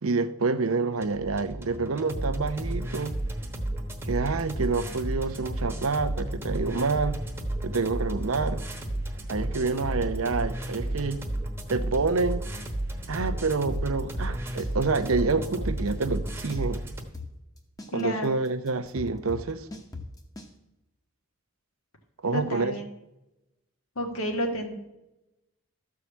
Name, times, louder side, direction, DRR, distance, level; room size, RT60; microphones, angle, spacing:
voice 1, 0.0-3.2 4.0-7.2 7.6-8.6 9.3-11.2 11.7-12.4 13.1-16.8 17.9-19.7 22.2-22.7, right 4 dB, 80° right, 11 dB, 0.7 m, -27 dB
sound 1, 1.0-17.0, right 1 dB, 10° right, 1.1 m, -32 dB
sound 2, 13.7-14.7 15.0-15.1 15.4-16.8 17.1-20.5, left 3 dB, 15° left, 1.0 m, -40 dB
voice 2, 17.9-18.3 22.3-22.9 23.9-24.7, equal, 85° left, 3 dB, 1.7 m, -30 dB
13.5 x 4.8 x 7.2 m, 0.95 s
head